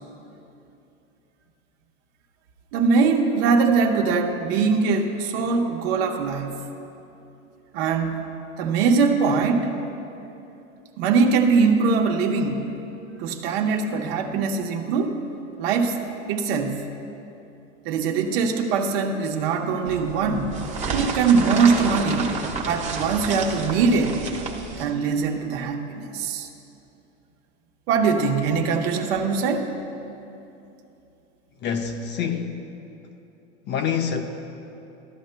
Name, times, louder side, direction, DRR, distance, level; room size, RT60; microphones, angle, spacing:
voice 1, 2.7-6.7 7.7-8.2 8.6-9.7 11.0-12.7 13.2-15.2 15.6-16.0 16.3-16.9 17.8-20.6 20.9-22.4 22.7-24.2 24.8-26.5 27.9-29.7, right 5 dB, 60° right, 3 dB, 1.0 m, -22 dB
sound 1, 19.9-24.9, right 4 dB, 20° right, 1.1 m, -30 dB
voice 2, 31.6-32.6 33.7-34.2, left 7 dB, 30° left, 6 dB, 0.6 m, -26 dB
14.5 x 11.5 x 2.2 m, 2.8 s
hypercardioid pair, 120°, 34 cm